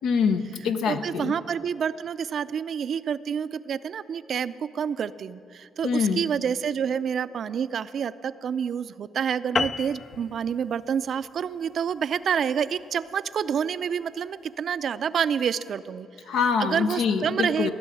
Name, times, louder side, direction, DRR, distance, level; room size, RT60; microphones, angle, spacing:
voice 1, 0.0-1.3 5.8-6.2 16.3-17.7, left 6 dB, 80° left, 8 dB, 0.8 m, -25 dB
voice 2, 0.9-16.1 16.6-17.7, right 7 dB, 60° right, 14 dB, 0.4 m, -28 dB
sound 1, 9.6-14.3, left 4 dB, 35° left, 0.3 m, -34 dB
17.0 x 6.3 x 9.1 m, 2.7 s
cardioid pair, 90°, 0 cm